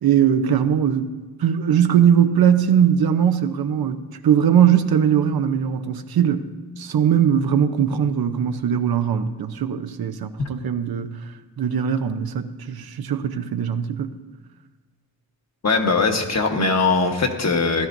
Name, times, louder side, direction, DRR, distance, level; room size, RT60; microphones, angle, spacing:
voice 1, 0.0-6.5 6.8-11.2 11.6-14.1, right 8 dB, 90° right, 0.8 m, -20 dB
voice 2, 15.6-17.9, left 4 dB, 45° left, 1.3 m, -20 dB
16.0 x 12.5 x 2.6 m
wide cardioid pair, 115°, 35 cm